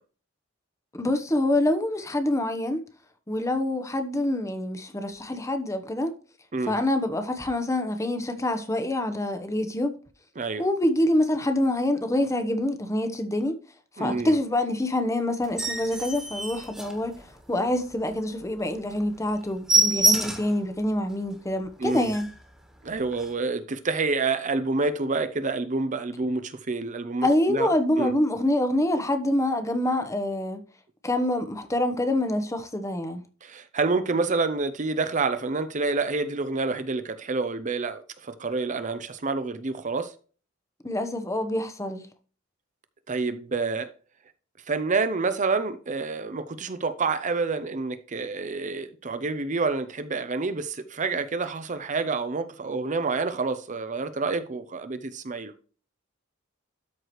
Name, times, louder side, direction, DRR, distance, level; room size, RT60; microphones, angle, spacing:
voice 1, 0.9-2.8 3.3-6.2 6.7-10.0 10.6-13.6 14.0-17.2 17.5-22.3 27.2-30.6 31.0-33.2 40.8-42.0, left 1 dB, 15° left, 0.9 m, -26 dB
voice 2, 14.0-14.4 21.8-22.1 22.8-27.7 28.0-28.2 33.4-40.1 43.1-43.9 44.7-55.5, right 3 dB, 40° right, 0.7 m, -28 dB
sound 1, 15.4-17.6 18.0-18.1 18.5-18.6 18.9-19.0 19.3-20.6 21.1-21.2 21.6-21.7 21.9-22.4 23.1-23.3, right 1 dB, 5° right, 1.6 m, -26 dB
12.5 x 4.7 x 3.1 m
head